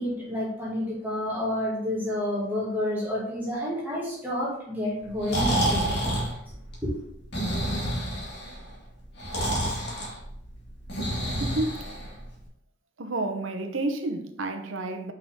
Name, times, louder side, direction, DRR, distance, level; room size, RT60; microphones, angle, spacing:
voice 1, 0.0-6.0 6.5-6.6 6.8-7.0, left 1 dB, 10° right, 2.3 m, -29 dB
Breathing, 5.0-12.4, right 1 dB, 55° left, 2.0 m, -29 dB
voice 2, 11.4-11.9 13.0-15.1, right 2 dB, 85° right, 0.8 m, -30 dB
6.0 x 5.6 x 3.6 m
head